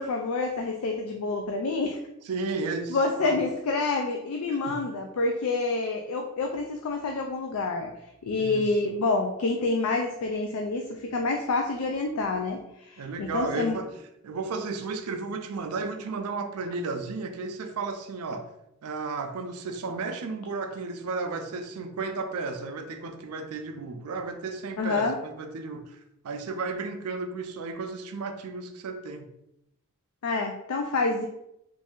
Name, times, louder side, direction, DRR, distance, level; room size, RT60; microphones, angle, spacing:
voice 1, 0.0-2.0 2.9-7.9 8.2-13.8 24.8-25.2 30.2-31.3, left 3 dB, 70° left, 0.4 m, -28 dB
voice 2, 2.3-3.4 4.5-4.8 8.4-8.7 13.0-13.9 14.2-18.5 18.8-29.3, right 4 dB, 85° right, 0.5 m, -33 dB
3.1 x 2.6 x 3.5 m
head